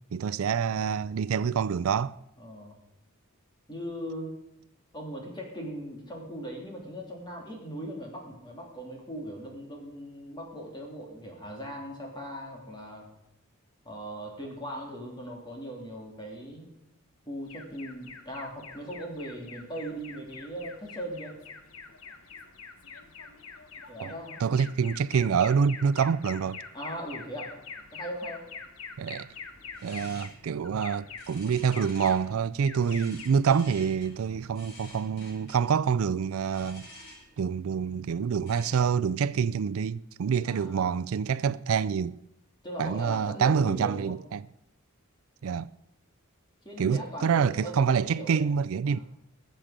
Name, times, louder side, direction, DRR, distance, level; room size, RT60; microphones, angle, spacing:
voice 1, 0.1-2.2 24.0-24.1 24.4-26.6 29.0-29.3 29.8-36.9 37.4-42.2 42.8-44.4 45.4-45.7 46.8-49.0, right 6 dB, 75° right, 0.4 m, -26 dB
voice 2, 2.4-2.8 3.7-4.4 4.9-13.1 13.8-16.7 17.3-21.4 23.9-24.4 26.7-27.5 27.9-28.5 40.4-40.9 42.6-44.2 46.6-48.5 48.9-49.0, equal, 20° left, 3.1 m, -39 dB
Alarm, 17.5-35.1, left 5 dB, 75° left, 1.2 m, -46 dB
sound 1, 29.3-39.0, left 2 dB, 50° left, 5.0 m, -52 dB
20.5 x 7.5 x 5.1 m
head